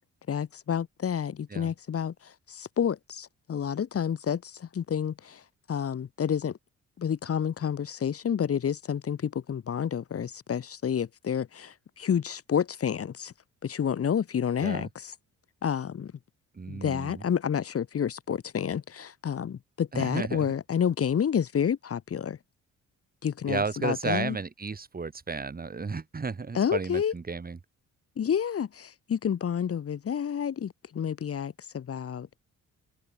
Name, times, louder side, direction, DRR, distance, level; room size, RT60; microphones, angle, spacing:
voice 1, 0.3-5.4 5.7-6.6 7.0-13.3 13.6-15.1 15.6-16.1 16.7-22.4 23.2-24.4 26.5-27.1 28.2-32.3, left 8 dB, 50° left, 2.3 m, -29 dB
voice 2, 16.5-17.2 19.9-20.5 23.5-27.6, right 4 dB, 30° right, 5.3 m, -33 dB
open air
cardioid pair, 90°, 30 cm